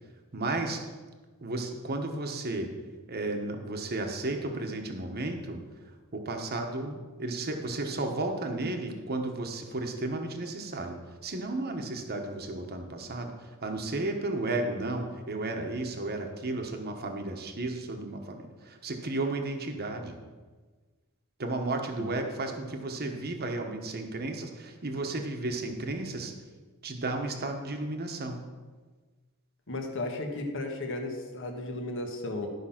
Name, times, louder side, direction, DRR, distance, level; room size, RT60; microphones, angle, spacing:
voice 1, 0.3-0.8 1.4-2.7 3.1-5.6 6.1-11.0 11.2-20.1 21.4-26.3 26.8-28.4, right 2 dB, 45° right, 4 dB, 1.2 m, -33 dB
voice 2, 29.7-32.5, left 2 dB, 60° left, 3 dB, 1.5 m, -34 dB
12.5 x 5.6 x 5.8 m, 1.4 s
head